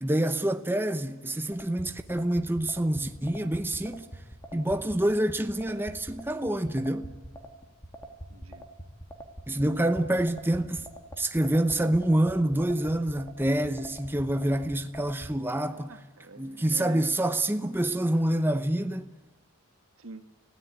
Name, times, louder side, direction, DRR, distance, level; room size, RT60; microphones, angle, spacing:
voice 1, 0.0-4.0 4.5-7.1 9.5-10.8 11.2-15.9 16.4-19.1, right 1 dB, 10° right, 0.8 m, -27 dB
sound 1, 1.5-15.3, right 1 dB, 15° left, 2.5 m, -43 dB
voice 2, 8.3-8.6 15.6-17.1 20.0-20.3, right 3 dB, 80° right, 1.6 m, -46 dB
29.5 x 17.0 x 9.3 m
head